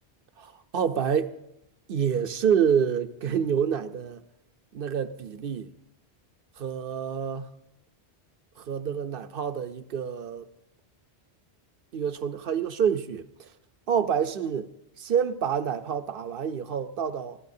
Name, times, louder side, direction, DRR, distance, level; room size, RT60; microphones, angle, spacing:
voice 1, 0.4-1.3 1.9-4.2 4.7-5.7 6.6-7.5 8.6-10.5 11.9-13.5 13.9-14.7 15.0-17.4, right 7 dB, 60° right, 0.9 m, -27 dB
28.0 x 15.0 x 2.7 m
omnidirectional pair, 1.1 m